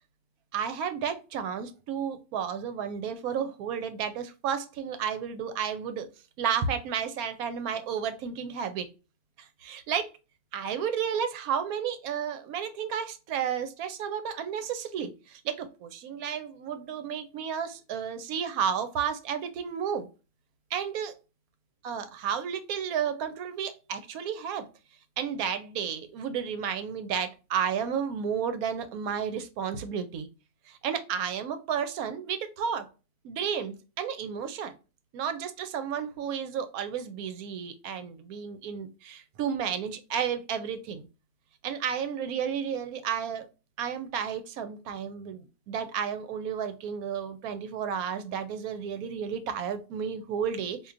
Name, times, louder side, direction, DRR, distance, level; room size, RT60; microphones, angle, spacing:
voice 1, 0.5-6.1 6.4-8.9 9.6-10.1 10.5-20.1 20.7-21.1 21.8-24.7 25.2-30.3 30.7-32.9 33.2-34.7 35.1-41.0 41.6-43.5 43.8-50.9, right 7 dB, 75° right, 10 dB, 1.0 m, -32 dB
4.4 x 2.6 x 2.4 m, 0.31 s
omnidirectional pair, 1.7 m